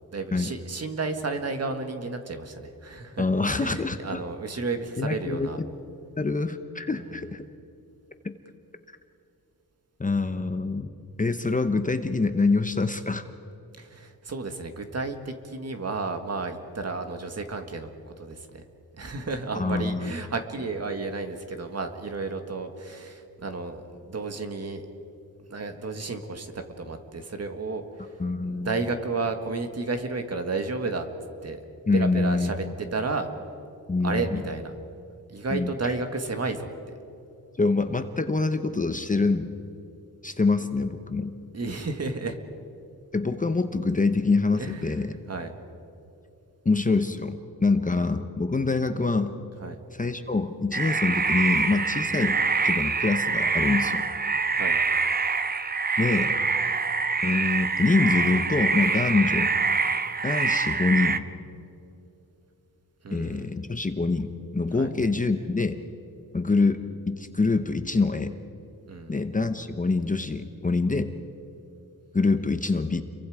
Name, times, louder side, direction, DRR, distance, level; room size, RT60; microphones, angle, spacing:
voice 1, 0.1-5.6 6.9-7.1 13.8-18.6 19.0-24.8 25.5-28.2 28.5-31.1 31.4-31.6 31.9-32.6 32.9-33.3 34.0-34.7 35.3-36.7 41.5-42.4 44.6-45.5 49.6-49.8 54.5-54.8 63.0-63.5 64.7-64.9 68.9-69.2, right 3 dB, 45° right, 6 dB, 1.8 m, -32 dB
voice 2, 3.2-4.2 5.0-5.5 6.2-7.4 8.2-8.3 10.0-10.9 11.2-13.2 19.6-20.1 28.2-28.8 31.9-32.7 33.9-34.4 35.5-35.9 37.6-39.5 40.2-41.3 43.1-45.1 46.6-49.4 50.0-52.4 52.6-54.0 56.0-56.3 57.2-59.5 60.2-61.2 63.1-65.8 66.3-66.8 67.1-68.3 69.1-71.1 72.1-73.0, left 3 dB, 20° left, 8 dB, 0.9 m, -25 dB
sound 1, 50.7-61.2, right 4 dB, 25° right, 0.7 m, -25 dB
30.0 x 23.0 x 5.0 m, 2.8 s
wide cardioid pair, 150°, 37 cm